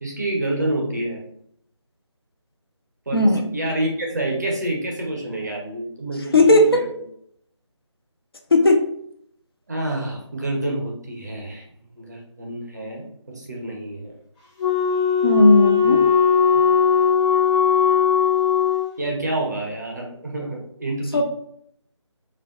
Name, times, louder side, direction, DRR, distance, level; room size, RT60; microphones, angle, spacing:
voice 1, 0.0-1.2 3.1-6.9 9.7-11.6 11.9-14.1 15.8-16.0 19.0-21.2, right 1 dB, 35° right, -2 dB, 0.5 m, -28 dB
voice 2, 6.3-6.8 8.5-8.8 15.2-16.2 21.1-21.2, left 1 dB, 50° left, 3 dB, 0.4 m, -15 dB
Wind instrument woodwind instrument, 14.6-18.9, left 7 dB, 15° left, 0.7 m, -18 dB
2.5 x 2.2 x 2.3 m, 0.70 s
figure-of-eight pair, 160°, 16 cm